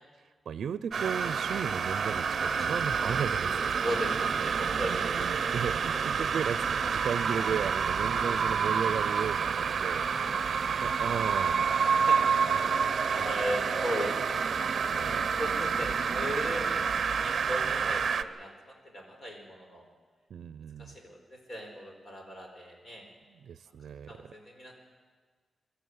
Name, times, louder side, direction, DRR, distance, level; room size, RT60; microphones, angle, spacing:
voice 1, 0.5-3.8 4.9-10.1 10.8-11.8 14.8-15.2 20.3-21.0 23.3-24.3, right 7 dB, 90° right, 14 dB, 0.5 m, -35 dB
sound 1, 0.9-18.2, right 6 dB, 55° right, 0.7 m, -28 dB
voice 2, 2.6-3.0 3.8-5.5 8.1-8.3 10.1-10.6 11.7-14.4 14.7-19.9 20.8-23.1 24.1-24.7, equal, 35° left, 2 dB, 4.6 m, -38 dB
23.0 x 13.0 x 9.5 m, 1.5 s
wide cardioid pair, 155°, 0 cm